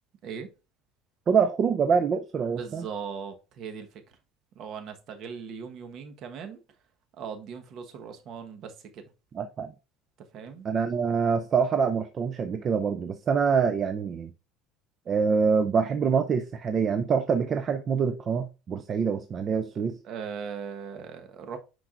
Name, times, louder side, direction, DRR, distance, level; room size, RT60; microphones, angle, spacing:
voice 1, 1.3-2.9 9.3-9.7 10.6-14.3 15.1-20.0, right 6 dB, 30° right, 0.5 m, -25 dB
voice 2, 2.5-4.0 4.5-6.6 7.2-9.1 10.3-10.7 20.0-21.6, right 6 dB, 45° right, 1.2 m, -39 dB
10.0 x 4.6 x 2.5 m
cardioid pair, 140°, 0 cm